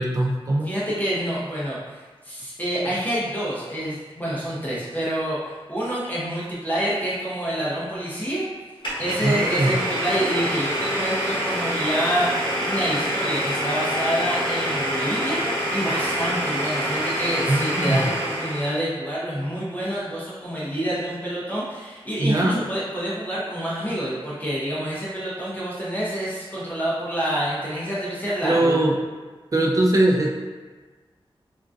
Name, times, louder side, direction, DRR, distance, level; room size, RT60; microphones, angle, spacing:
voice 1, 0.0-0.7 9.2-9.7 17.5-18.0 22.2-22.6 28.4-29.0 29.5-30.3, right 1 dB, 35° right, -1 dB, 0.4 m, -21 dB
voice 2, 0.6-8.4 9.0-28.8, equal, 15° left, -8 dB, 0.7 m, -27 dB
Domestic sounds home sounds, 8.8-18.8, equal, 55° left, 0.9 m, -26 dB
3.6 x 2.4 x 2.5 m, 1.4 s
wide cardioid pair, 120°, 10 cm